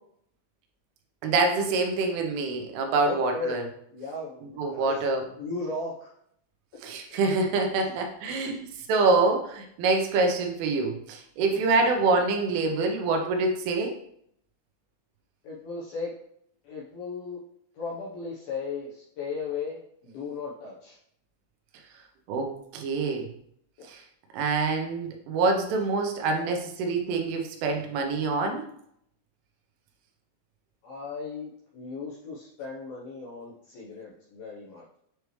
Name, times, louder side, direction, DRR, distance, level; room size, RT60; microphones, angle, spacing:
voice 1, 1.2-3.6 4.6-5.2 6.8-14.0 22.3-23.3 23.9-24.0 24.3-28.7, right 3 dB, 85° right, 3 dB, 3.4 m, -26 dB
voice 2, 3.0-3.6 3.9-5.0 5.4-6.1 7.1-7.2 8.5-8.6 11.5-11.6 15.4-16.2 16.6-17.4 17.7-21.0 23.8-23.9 30.8-34.8, left 4 dB, 75° left, -5 dB, 2.3 m, -36 dB
9.1 x 3.3 x 3.1 m, 0.70 s
omnidirectional pair, 5.5 m